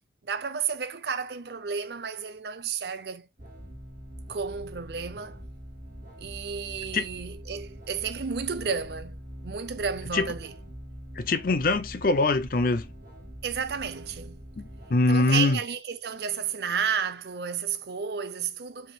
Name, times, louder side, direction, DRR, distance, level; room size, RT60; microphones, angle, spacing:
voice 1, 0.2-3.3 4.3-5.4 6.2-10.5 13.4-14.5 15.1-18.9, right 6 dB, 65° right, 0.5 m, -32 dB
sound 1, 3.4-14.9, equal, 45° right, 2.2 m, -43 dB
voice 2, 11.2-12.9 14.6-15.6, left 3 dB, 50° left, 0.5 m, -23 dB
5.2 x 3.6 x 2.2 m
head